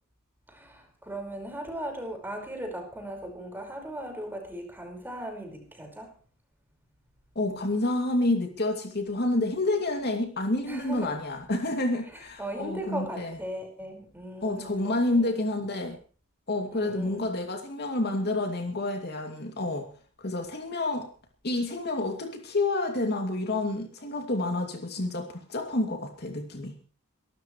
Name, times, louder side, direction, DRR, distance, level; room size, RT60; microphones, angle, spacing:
voice 1, 0.5-6.1 10.7-11.2 12.1-15.3 16.7-17.2, right 1 dB, 10° right, 3 dB, 5.1 m, -38 dB
voice 2, 7.3-13.3 14.4-16.0 16.5-19.9 20.2-21.1 21.4-26.7, left 2 dB, 50° left, 3 dB, 2.6 m, -29 dB
24.5 x 13.0 x 3.2 m, 0.41 s
head